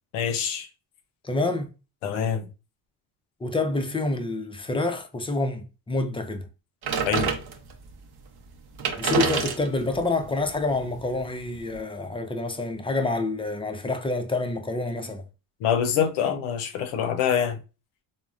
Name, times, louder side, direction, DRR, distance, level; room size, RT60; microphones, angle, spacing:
voice 1, 0.1-0.7 2.0-2.5 7.0-7.3 15.6-17.6, left 8 dB, 90° left, 0.7 m, -25 dB
voice 2, 1.2-1.7 3.4-6.5 9.0-15.2, left 2 dB, 10° left, 0.4 m, -27 dB
sound 1, 6.8-7.9 8.5-8.6 8.7-11.8, right 6 dB, 50° right, 0.7 m, -29 dB
3.5 x 2.1 x 2.4 m
supercardioid pair, 75°, 49 cm